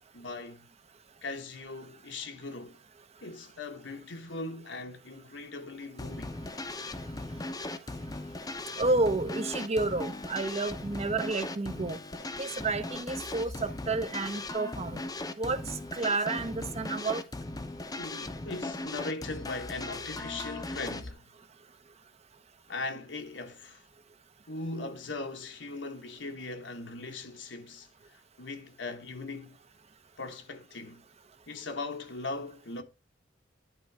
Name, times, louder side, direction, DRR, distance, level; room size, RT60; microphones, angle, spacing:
voice 1, 0.1-0.7 1.2-2.8 3.2-6.3 12.2-12.3 17.9-21.3 22.7-23.8 24.5-29.6 30.2-31.0 31.5-32.8, left 3 dB, 80° left, 1.3 m, -39 dB
sound 1, 6.0-21.1, left 2 dB, 20° left, 0.7 m, -38 dB
voice 2, 8.8-12.0 12.4-15.0 15.4-15.6 15.9-17.2, right 3 dB, 35° right, 0.8 m, -30 dB
11.0 x 3.8 x 4.7 m
head